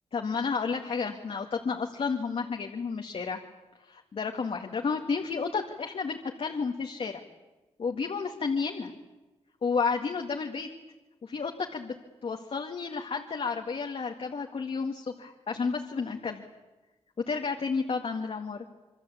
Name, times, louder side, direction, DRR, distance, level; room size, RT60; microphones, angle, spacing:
voice 1, 0.1-3.4 3.9-7.2 7.8-8.9 9.6-10.7 11.2-11.9 12.2-16.5 17.3-18.6, left 5 dB, 60° left, 2 dB, 2.1 m, -31 dB
27.0 x 25.0 x 8.6 m, 1.1 s
wide cardioid pair, 115°, 11 cm